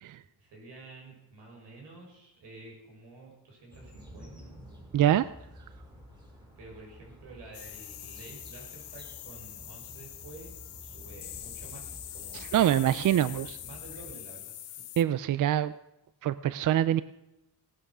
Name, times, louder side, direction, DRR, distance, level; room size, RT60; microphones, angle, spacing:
voice 1, 0.4-4.5 6.6-10.5 10.8-11.8 12.1-14.8, right 2 dB, 85° right, 0 dB, 6.7 m, -50 dB
sound 1, 3.7-14.1, equal, 10° right, 4.4 m, -51 dB
voice 2, 4.9-5.2 12.5-13.6 15.0-15.7 16.2-17.0, right 11 dB, 50° right, 16 dB, 0.5 m, -24 dB
sound 2, 7.5-15.0, left 12 dB, 75° left, 1.2 m, -44 dB
17.5 x 12.0 x 6.1 m, 0.94 s
cardioid pair, 140°, 40 cm